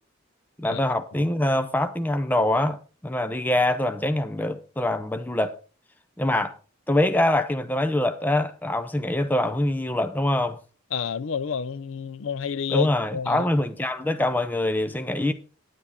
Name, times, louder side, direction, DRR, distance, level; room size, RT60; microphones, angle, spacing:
voice 1, 0.6-5.6 6.2-6.6 6.9-10.6 12.7-15.3, left 1 dB, 10° left, 0.5 m, -24 dB
voice 2, 10.9-13.4, left 7 dB, 70° left, 0.5 m, -29 dB
9.8 x 9.6 x 4.2 m
head